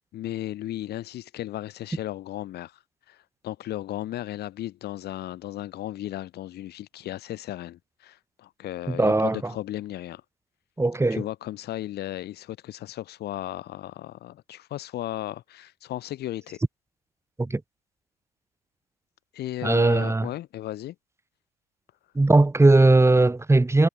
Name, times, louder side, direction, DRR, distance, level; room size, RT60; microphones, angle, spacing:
voice 1, 0.0-2.8 3.1-10.2 11.1-16.6 19.3-20.9, left 14 dB, 50° left, 5.1 m, -35 dB
voice 2, 8.9-9.5 10.8-11.2 17.4-17.6 19.6-20.3 22.1-23.9, right 2 dB, 10° right, 6.6 m, -19 dB
figure-of-eight pair, 60°, 21 cm